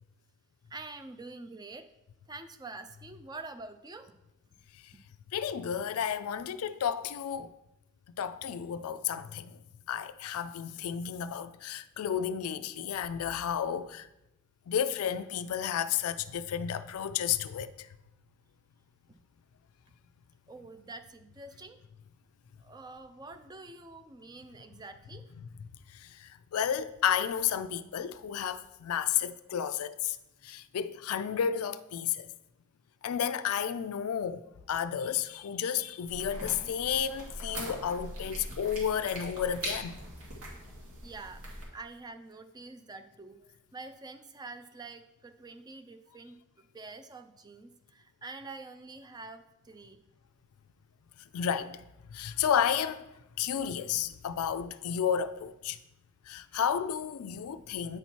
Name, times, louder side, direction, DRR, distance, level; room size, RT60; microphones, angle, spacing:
voice 1, 0.7-1.9 2.3-4.1 4.9-5.0 7.4-7.5 19.1-19.2 20.5-21.8 22.6-25.3 29.2-29.3 41.0-41.4 41.7-43.4 43.7-50.0, right 3 dB, 20° right, 0.4 m, -46 dB
voice 2, 5.3-7.5 8.2-9.6 9.9-14.1 14.7-17.9 26.0-30.2 30.4-32.3 33.0-34.4 34.7-40.0 51.3-51.8 52.1-53.0 53.4-55.8 56.3-58.0, left 8 dB, 75° left, 0.4 m, -32 dB
sound 1, 36.1-41.6, right 1 dB, 70° right, 2.0 m, -41 dB
9.0 x 4.2 x 4.5 m
head